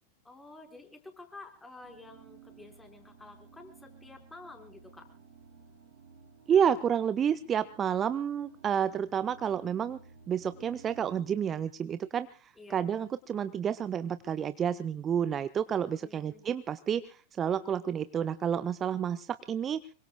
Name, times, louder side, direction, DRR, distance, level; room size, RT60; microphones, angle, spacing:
voice 1, 0.2-5.1 12.6-12.9 16.0-16.4, left 3 dB, 10° left, 5 dB, 4.7 m, -50 dB
sound 1, 1.8-11.4, right 6 dB, 50° right, 3.9 m, -55 dB
voice 2, 6.5-10.0 10.3-19.8, right 8 dB, 25° right, 13 dB, 0.7 m, -30 dB
26.0 x 23.5 x 2.3 m, 0.38 s
figure-of-eight pair, 90°, 0 cm